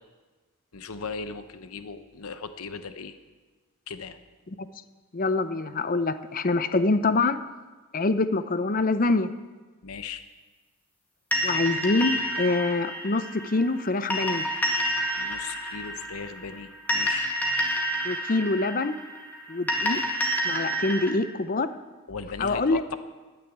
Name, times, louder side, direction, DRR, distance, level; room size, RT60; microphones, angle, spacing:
voice 1, 0.7-3.2 3.9-4.2 9.8-10.2 15.1-17.3 22.1-23.0, left 5 dB, 70° left, 10 dB, 0.9 m, -37 dB
voice 2, 5.1-7.4 7.9-9.3 11.4-14.5 18.0-18.9 19.5-20.0 20.4-21.7 22.4-22.8, left 3 dB, 40° left, 12 dB, 0.6 m, -25 dB
sound 1, 11.3-21.1, equal, 10° left, 1.9 m, -29 dB
12.5 x 10.0 x 8.2 m, 1.3 s
head